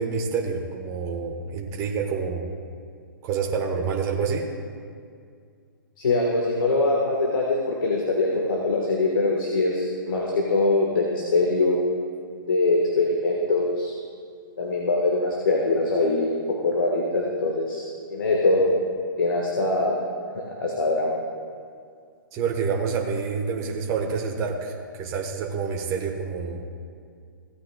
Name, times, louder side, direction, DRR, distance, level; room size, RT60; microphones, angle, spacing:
voice 1, 0.0-2.4 3.2-4.5 22.3-26.6, right 5 dB, 25° right, 0 dB, 1.2 m, -27 dB
voice 2, 6.0-11.8 12.5-13.9 14.6-17.8 18.1-18.7 19.2-20.0 20.3-21.2, left 2 dB, 70° left, -1 dB, 1.5 m, -23 dB
16.0 x 9.3 x 2.3 m, 2.2 s
hypercardioid pair, 130°, 12 cm